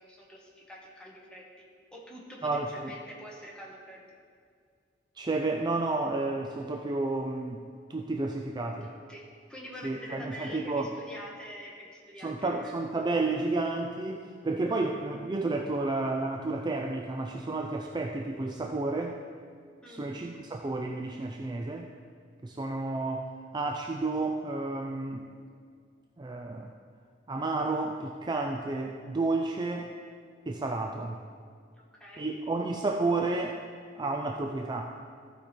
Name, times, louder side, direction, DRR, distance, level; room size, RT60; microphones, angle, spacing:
voice 1, 0.1-1.6 1.9-4.0 8.8-12.8 19.8-20.2 31.8-32.3, equal, 5° left, -3 dB, 1.5 m, -46 dB
voice 2, 2.4-2.9 5.2-8.9 9.8-10.9 12.2-19.2 19.9-21.9 22.4-23.3 23.5-25.3 26.2-26.7 27.3-29.9 30.5-31.2 32.2-33.6 33.9-34.9, right 3 dB, 25° right, 2 dB, 0.4 m, -31 dB
14.5 x 5.1 x 4.4 m, 2.1 s
head